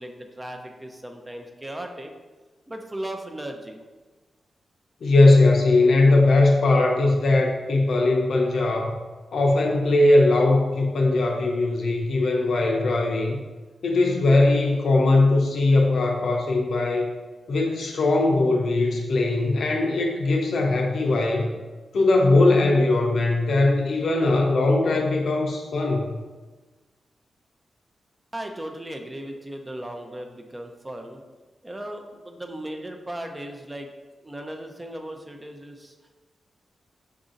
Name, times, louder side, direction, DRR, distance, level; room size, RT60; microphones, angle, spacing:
voice 1, 0.0-2.1 2.7-3.8 28.3-31.2 31.6-33.9 34.2-35.9, right 1 dB, 20° right, 3 dB, 0.5 m, -36 dB
voice 2, 5.0-8.9 9.3-13.4 13.8-17.1 17.5-21.5 21.9-26.2, left 2 dB, 75° left, 1 dB, 0.6 m, -20 dB
5.0 x 2.6 x 2.5 m, 1.3 s
cardioid pair, 50°, 0 cm